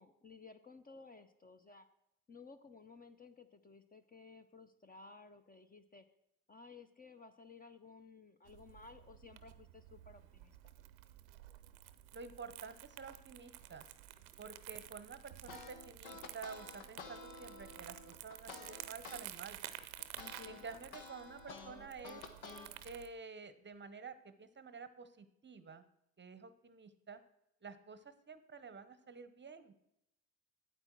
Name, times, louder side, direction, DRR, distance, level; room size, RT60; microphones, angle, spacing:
voice 1, 0.0-1.9 2.3-6.0 6.5-10.6 20.2-20.7, left 4 dB, 20° left, 10 dB, 0.7 m, -56 dB
Crumpling crinkling, 8.4-23.1, right 14 dB, 85° right, 0.6 m, -52 dB
voice 2, 12.1-13.9 14.4-19.6 20.5-22.2 22.8-25.8 26.2-27.2 27.6-29.7, right 5 dB, 25° right, 12 dB, 0.8 m, -50 dB
sound 1, 15.5-19.2 19.6-22.7, left 4 dB, 80° left, 1.2 m, -51 dB
8.8 x 8.2 x 4.5 m, 0.82 s
hypercardioid pair, 60°, 41 cm